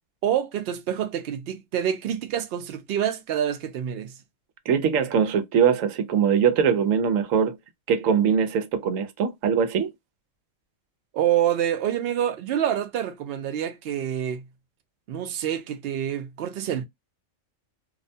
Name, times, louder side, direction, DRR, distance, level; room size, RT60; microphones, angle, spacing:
voice 1, 0.2-4.1 11.1-14.5 15.1-16.8, right 10 dB, 60° right, 0.7 m, -27 dB
voice 2, 4.7-7.6 7.9-9.9, right 7 dB, 85° right, 1.0 m, -22 dB
2.5 x 2.1 x 2.5 m
omnidirectional pair, 1.3 m